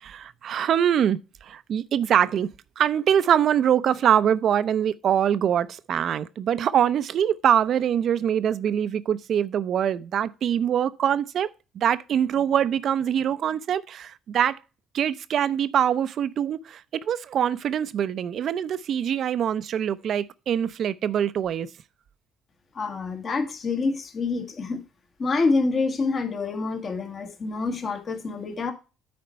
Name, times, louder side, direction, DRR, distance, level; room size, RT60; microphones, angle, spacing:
voice 1, 0.0-2.5 2.8-11.5 11.7-14.6 14.9-21.7, right 9 dB, 60° right, 0.6 m, -24 dB
voice 2, 22.8-24.8 25.2-28.7, left 3 dB, 45° left, 1.8 m, -27 dB
9.5 x 4.3 x 5.5 m
supercardioid pair, 75°, 0 cm